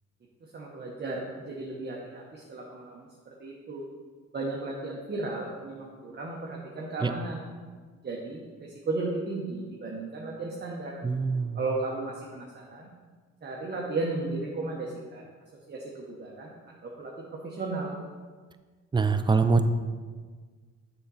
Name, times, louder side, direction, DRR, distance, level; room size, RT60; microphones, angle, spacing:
voice 1, 0.4-3.1 3.4-3.8 4.3-7.4 8.0-11.0 11.5-12.9 13.4-15.2 15.7-16.5 16.8-18.0, right 3 dB, 35° right, -2 dB, 1.0 m, -35 dB
voice 2, 11.0-11.6 18.9-19.7, right 4 dB, 15° right, 9 dB, 0.4 m, -24 dB
6.9 x 4.0 x 5.5 m, 1.5 s
cardioid pair, 90°, 30 cm